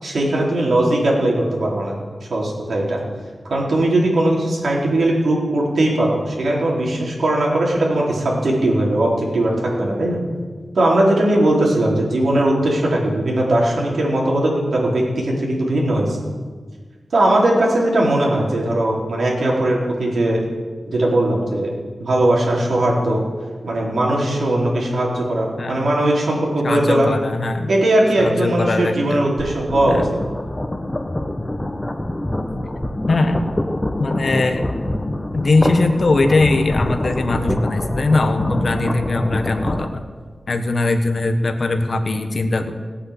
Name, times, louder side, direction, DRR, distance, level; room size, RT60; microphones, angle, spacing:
voice 1, 0.0-1.9 2.3-3.0 3.5-10.2 10.7-16.2 17.1-20.4 20.9-21.7 22.0-23.2 23.6-27.1 27.7-30.0, right 1 dB, 80° right, -3 dB, 4.3 m, -19 dB
voice 2, 25.6-25.9 26.6-27.7 28.2-29.3 29.9-30.1 33.1-33.4 34.0-34.7 35.3-40.0 40.5-42.7, left 2 dB, 60° left, 6 dB, 1.4 m, -20 dB
sound 1, 29.3-39.9, left 1 dB, 20° left, 1.2 m, -25 dB
18.0 x 8.6 x 8.3 m, 1.5 s
wide cardioid pair, 70°, 0 cm